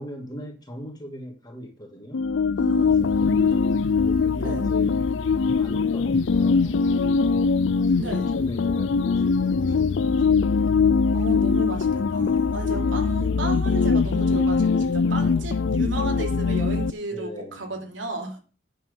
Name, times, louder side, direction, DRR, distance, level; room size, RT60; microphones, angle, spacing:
voice 1, 0.0-2.3 2.8-4.9 5.5-6.9 7.8-10.9 11.5-11.7 12.5-12.7 15.0-15.5 17.1-17.7, equal, 20° left, 2.5 m, -40 dB
sound 1, 2.1-16.9, left 5 dB, 80° left, 0.5 m, -22 dB
voice 2, 2.5-3.5 4.4-4.7 8.0-8.3 11.1-18.4, right 2 dB, 90° right, 3.0 m, -33 dB
9.1 x 7.4 x 5.3 m
head